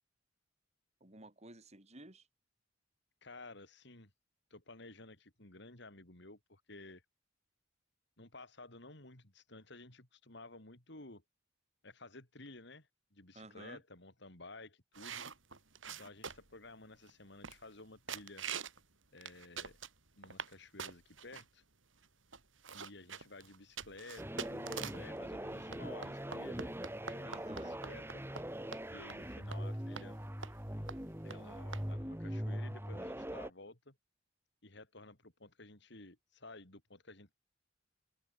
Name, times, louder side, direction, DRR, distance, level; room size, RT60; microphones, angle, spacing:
voice 1, 1.0-2.3 13.3-13.8 27.2-27.8, right 2 dB, 35° right, 3.6 m, -54 dB
voice 2, 3.2-4.1 4.5-7.0 8.2-11.2 11.8-15.3 15.9-18.4 19.1-19.8 20.2-21.6 22.7-26.8 27.1-28.2 28.9-30.2 31.2-34.0 34.6-37.3, left 2 dB, 65° left, 4.6 m, -54 dB
sound 1, 14.9-16.6 17.1-17.2 17.4-17.8 18.1-18.8 19.2-20.5 20.8-21.4 22.0-22.1 22.3-25.1 25.7-28.4 28.7-28.8 29.1-29.2 29.5-29.6 30.0-30.1 30.4-30.6 30.9-31.0 31.3-31.4 31.7-31.8, right 6 dB, 85° right, 6.2 m, -44 dB
sound 2, 24.2-33.5, equal, 10° right, 4.0 m, -42 dB
open air
head